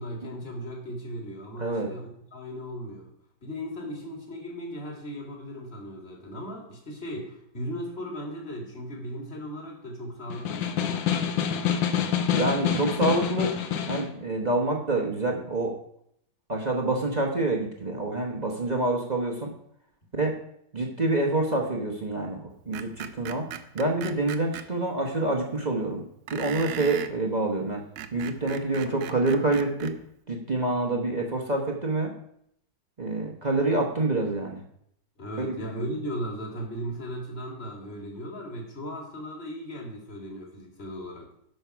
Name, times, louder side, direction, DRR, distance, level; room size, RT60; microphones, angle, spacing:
voice 1, 0.0-3.1 3.4-11.0 35.2-41.3, equal, 30° left, 0 dB, 2.1 m, -37 dB
voice 2, 1.6-1.9 12.3-13.5 13.9-15.7 16.5-19.5 20.1-20.4 20.7-23.5 23.7-26.0 26.3-27.8 28.1-29.9 30.3-32.1 33.0-34.6 35.4-35.8, right 2 dB, 35° right, 0 dB, 0.7 m, -27 dB
Snare drum, 10.3-14.2, left 8 dB, 70° left, 1.5 m, -27 dB
Screech, 22.7-24.7 26.3-27.2 27.8-30.0, right 10 dB, 70° right, 1.1 m, -37 dB
12.0 x 5.6 x 4.6 m, 0.71 s
omnidirectional pair, 2.3 m